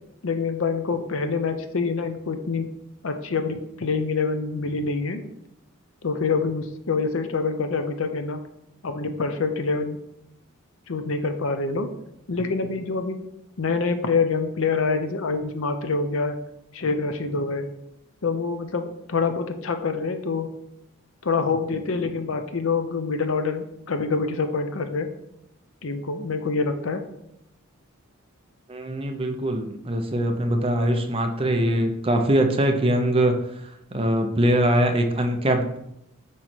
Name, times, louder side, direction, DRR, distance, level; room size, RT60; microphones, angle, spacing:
voice 1, 0.2-2.7 3.0-5.2 6.0-8.4 8.8-10.0 10.9-11.9 12.3-13.2 13.6-16.4 16.7-17.7 18.2-20.5 21.2-25.1 25.8-27.0, left 4 dB, 65° left, 7 dB, 0.6 m, -26 dB
voice 2, 28.7-33.3 33.9-35.8, right 1 dB, 25° right, 5 dB, 0.6 m, -22 dB
8.0 x 3.1 x 4.4 m, 0.80 s
head